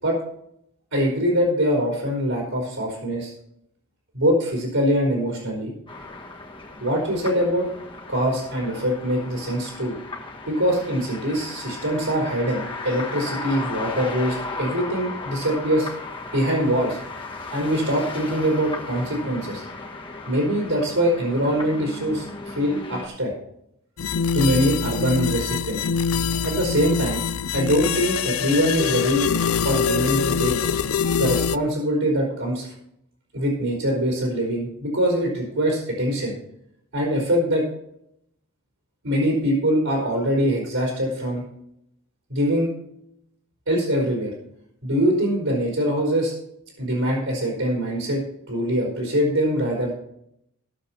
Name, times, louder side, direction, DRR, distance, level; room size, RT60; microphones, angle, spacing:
voice 1, 0.9-3.3 4.1-5.7 6.8-7.7 8.1-10.0 10.5-15.9 16.3-17.0 17.5-19.6 20.3-23.3 24.3-25.8 26.4-27.2 27.5-29.3 29.6-30.5 31.2-32.7 33.3-36.3 36.9-37.6 39.0-41.4 42.3-42.7 43.7-44.3 44.8-46.3 46.8-49.9, equal, 70° right, -3 dB, 4.4 m, -23 dB
sound 1, 5.9-23.1, left 3 dB, 20° left, 1.6 m, -36 dB
sound 2, 24.0-31.6, left 6 dB, 70° left, 0.5 m, -24 dB
17.0 x 7.3 x 4.3 m, 0.74 s
head